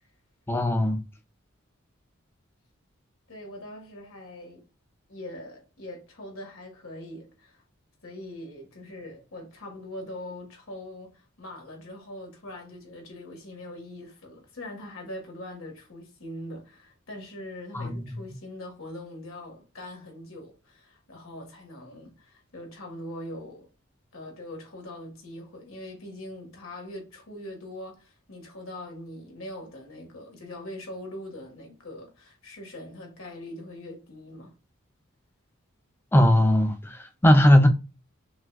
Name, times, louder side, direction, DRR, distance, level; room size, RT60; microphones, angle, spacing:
voice 1, 0.5-1.0 17.7-18.1 36.1-37.7, left 1 dB, 10° left, 0.5 m, -19 dB
voice 2, 3.3-4.6 5.1-7.6 8.0-23.7 24.1-34.5, left 1 dB, 75° left, 1.7 m, -42 dB
5.9 x 2.4 x 2.4 m
head